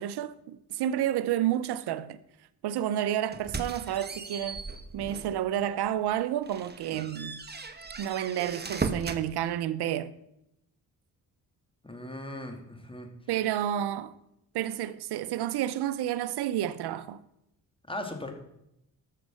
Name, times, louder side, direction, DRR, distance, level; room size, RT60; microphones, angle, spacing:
voice 1, 0.0-2.2 2.6-4.7 4.9-7.4 8.0-10.1 13.3-14.1 14.5-17.2, right 11 dB, 80° right, 0.8 m, -30 dB
sound 1, 3.3-5.4 5.9-6.0 6.4-9.3, right 4 dB, 25° right, 1.3 m, -37 dB
voice 2, 11.8-13.1 17.9-18.3, left 1 dB, 15° left, 2.7 m, -38 dB
13.5 x 6.6 x 6.4 m
supercardioid pair, 65°, 39 cm